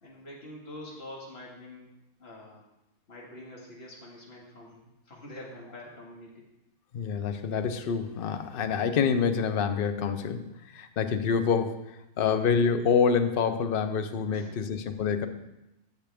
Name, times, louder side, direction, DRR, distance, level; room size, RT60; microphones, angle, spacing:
voice 1, 0.0-1.9 2.2-2.6 3.1-4.8 5.1-6.4 14.3-14.6, left 1 dB, 40° left, -3 dB, 2.1 m, -45 dB
voice 2, 6.9-11.8 12.2-15.3, left 6 dB, 60° left, 9 dB, 0.6 m, -27 dB
14.0 x 6.7 x 3.5 m, 0.94 s
omnidirectional pair, 1.7 m